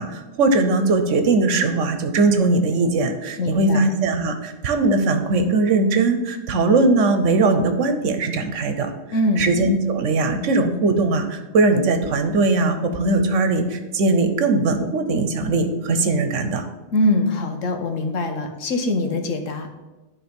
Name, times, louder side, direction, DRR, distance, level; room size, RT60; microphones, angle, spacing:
voice 1, 0.0-8.9 9.4-16.7, right 3 dB, 75° right, 8 dB, 1.2 m, -20 dB
voice 2, 3.4-3.9 9.1-9.5 16.9-19.7, left 1 dB, 80° left, 5 dB, 1.4 m, -23 dB
10.5 x 3.8 x 5.2 m, 1.1 s
omnidirectional pair, 1.3 m